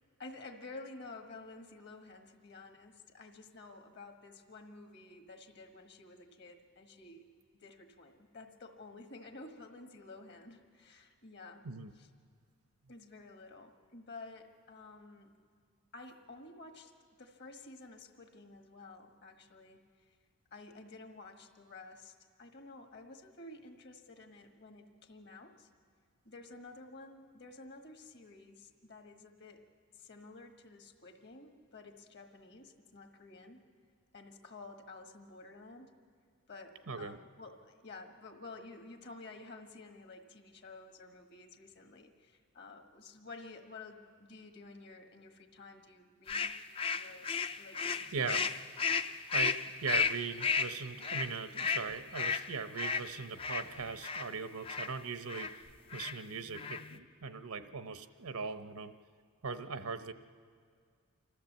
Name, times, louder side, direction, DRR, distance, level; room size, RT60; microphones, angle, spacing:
voice 1, 0.2-7.3 7.5-11.7 12.0-12.1 12.9-15.3 15.9-16.9 17.2-19.8 20.5-25.7 26.2-29.6 29.9-33.6 34.1-35.9 36.5-46.6 46.9-47.3 47.6-48.6, left 3 dB, 50° left, 5 dB, 1.5 m, -52 dB
voice 2, 36.9-37.2 48.1-48.4 49.3-55.6 55.9-58.9 59.4-60.1, right 5 dB, 85° right, 10 dB, 0.9 m, -40 dB
sound 1, 46.3-54.3 54.7-54.9 55.3-55.5 55.9-56.2 56.5-57.0, left 5 dB, 25° left, 0.4 m, -34 dB
27.5 x 13.5 x 7.3 m, 2.1 s
head